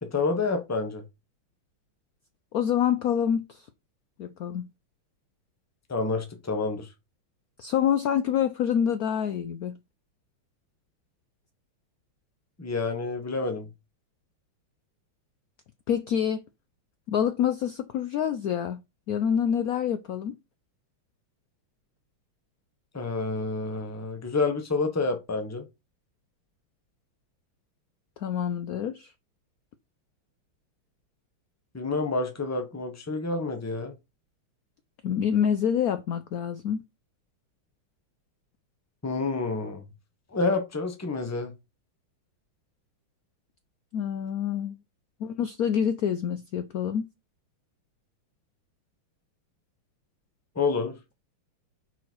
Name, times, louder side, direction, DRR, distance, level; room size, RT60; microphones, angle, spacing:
voice 1, 0.0-1.0 5.9-6.9 12.6-13.7 22.9-25.7 31.7-34.0 39.0-39.9 40.3-41.5 50.5-51.0, left 3 dB, 10° left, 0.8 m, -28 dB
voice 2, 2.5-3.7 4.2-4.7 7.6-9.8 15.9-16.4 17.1-18.8 19.1-20.3 28.2-29.1 35.0-36.8 43.9-44.8 45.2-47.1, left 8 dB, 75° left, 0.8 m, -26 dB
6.1 x 4.8 x 4.5 m
omnidirectional pair, 2.3 m